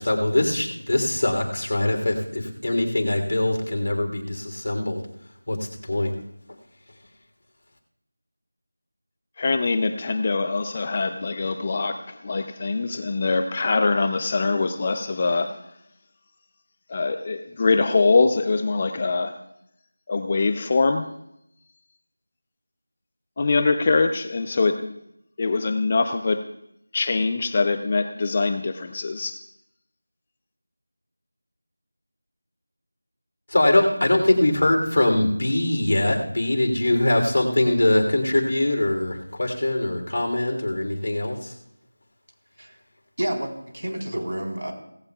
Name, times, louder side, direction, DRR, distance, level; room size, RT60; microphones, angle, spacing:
voice 1, 0.0-5.1 5.5-6.1 33.5-41.5, left 1 dB, 60° left, 2 dB, 3.2 m, -22 dB
voice 2, 9.4-15.6 16.9-19.3 20.1-21.1 23.4-25.0 25.4-26.5 26.9-29.4, left 3 dB, 25° left, 8 dB, 0.5 m, -23 dB
voice 3, 43.2-44.7, right 1 dB, 85° right, 1 dB, 4.1 m, -29 dB
17.5 x 16.0 x 2.4 m, 0.80 s
figure-of-eight pair, 175°, 0 cm